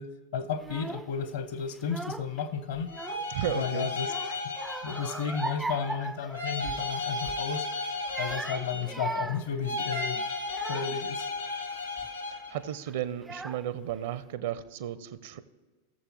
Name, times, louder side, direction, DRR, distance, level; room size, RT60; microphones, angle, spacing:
voice 1, 0.0-2.9 3.5-4.1 4.8-7.7 8.2-10.2 10.7-11.3, left 6 dB, 55° left, 0.9 m, -33 dB
Child speech kid speaking / Crying sobbing, 0.6-1.1 1.7-2.4 2.7-3.6 4.0-6.9 7.2-7.5 8.0-11.1 11.7-12.1 12.9-13.0 13.2-13.9, right 3 dB, 10° right, 0.3 m, -39 dB
sound 1, 2.9-5.7 6.3-9.1 9.6-12.6, left 3 dB, 80° left, 1.3 m, -34 dB
voice 2, 3.3-3.9 12.5-15.4, right 11 dB, 55° right, 0.6 m, -34 dB
18.5 x 6.9 x 3.0 m
figure-of-eight pair, 90°, 0 cm